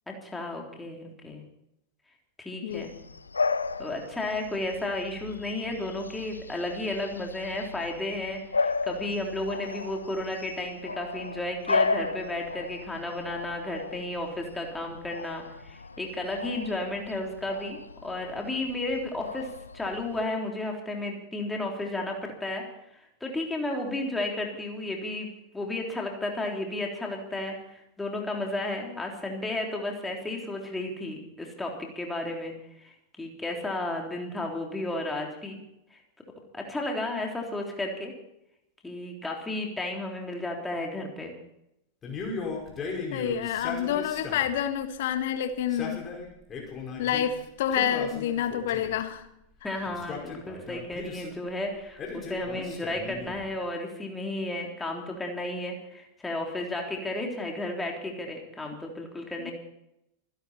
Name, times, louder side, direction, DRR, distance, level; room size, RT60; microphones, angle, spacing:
voice 1, 0.1-1.4 2.4-2.9 3.8-22.6 22.9-25.3 25.5-32.5 32.8-32.9 33.2-35.6 35.9-36.0 36.5-38.1 38.8-41.4 49.6-59.5, left 2 dB, 10° left, 1 dB, 3.4 m, -33 dB
Bark / Bird vocalization bird call bird song, 2.7-20.3, left 4 dB, 75° left, 0.6 m, -35 dB
Male speech man speaking, 42.0-44.6 45.5-47.3 47.7-49.0 49.9-51.4 52.0-53.5, left 4 dB, 25° left, 5.2 m, -37 dB
voice 2, 43.1-46.0 47.0-49.3 49.8-49.9 59.4-59.5, left 9 dB, 55° left, 9 dB, 1.7 m, -28 dB
25.5 x 11.5 x 4.3 m, 0.82 s
figure-of-eight pair, 90°, 0 cm